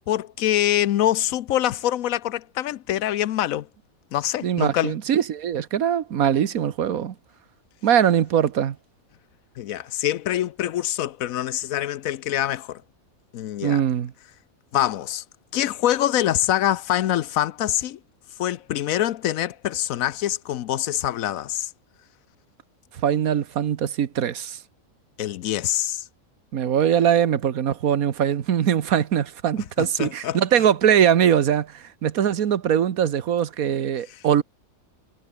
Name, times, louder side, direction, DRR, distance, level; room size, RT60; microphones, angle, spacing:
voice 1, 0.1-3.7 4.1-4.9 9.6-12.8 13.3-13.8 14.7-15.2 15.5-18.0 18.4-21.7 25.2-26.0 29.8-30.4, left 12 dB, 75° left, 1.1 m, -25 dB
voice 2, 4.4-7.1 7.8-8.8 13.6-14.1 23.0-24.6 26.5-34.4, right 9 dB, 85° right, 1.5 m, -21 dB
omnidirectional pair, 1.5 m